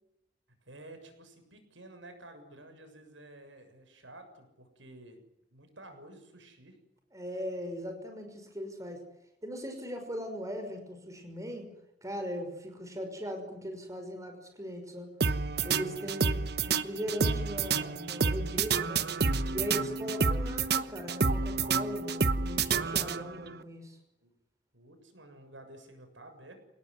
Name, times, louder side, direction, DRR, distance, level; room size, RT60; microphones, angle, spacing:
voice 1, 0.6-5.2 5.5-6.8 24.2-24.3 24.7-26.6, right 1 dB, 85° right, 7 dB, 7.0 m, -51 dB
voice 2, 7.1-9.0 9.4-11.7 12.0-15.1 15.6-19.1 19.5-24.0, equal, 15° right, 5 dB, 5.8 m, -39 dB
sound 1, 15.2-23.5, right 4 dB, 60° right, 1.1 m, -29 dB
28.0 x 19.0 x 9.7 m, 0.84 s
head